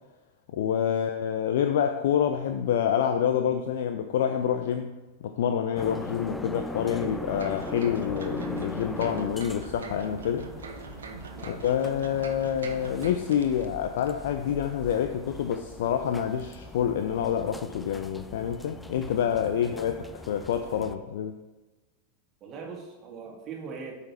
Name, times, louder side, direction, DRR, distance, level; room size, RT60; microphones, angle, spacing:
voice 1, 0.5-4.9 5.2-10.5 11.5-21.4, left 9 dB, 55° left, 7 dB, 0.5 m, -27 dB
sound 1, 5.8-20.9, left 2 dB, 5° left, 0.5 m, -41 dB
sound 2, 7.4-13.7 14.0-14.1, right 4 dB, 65° right, 0.9 m, -42 dB
voice 2, 19.6-20.1 22.4-24.0, right 5 dB, 30° right, -1 dB, 2.1 m, -41 dB
8.6 x 5.7 x 4.4 m, 1.1 s
figure-of-eight pair, 90°, 0 cm